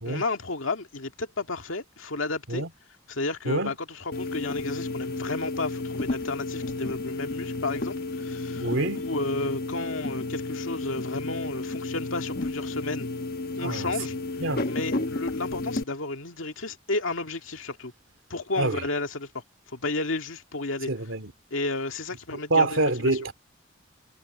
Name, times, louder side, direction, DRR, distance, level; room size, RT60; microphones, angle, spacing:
voice 1, 0.0-2.6 3.1-13.1 13.6-17.9 18.3-20.9 21.5-23.2, left 3 dB, 90° left, 2.1 m, -32 dB
sound 1, 4.1-15.8, left 2 dB, 50° left, 1.3 m, -32 dB
voice 2, 8.6-9.0 13.6-13.9 14.4-14.6 18.6-18.8 20.9-21.3 22.3-23.3, right 2 dB, 80° right, 2.6 m, -26 dB
head